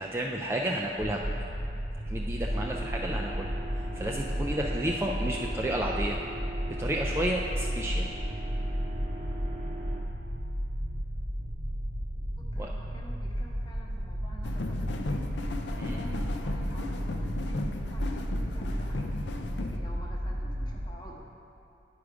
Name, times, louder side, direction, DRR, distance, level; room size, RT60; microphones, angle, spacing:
voice 1, 0.0-1.4 2.1-6.2 6.8-8.1 12.6-12.7 15.8-16.0, right 1 dB, 15° right, -1 dB, 0.3 m, -32 dB
sound 1, 1.0-20.9, equal, 70° right, 0.9 m, -34 dB
sound 2, 2.4-10.0, equal, 45° right, 0.8 m, -39 dB
voice 2, 12.4-15.2 15.7-19.2 19.5-21.3, equal, 25° left, -2 dB, 1.0 m, -50 dB
sound 3, 14.4-19.8, left 2 dB, 80° left, 0.5 m, -36 dB
9.3 x 4.9 x 4.8 m, 2.7 s
head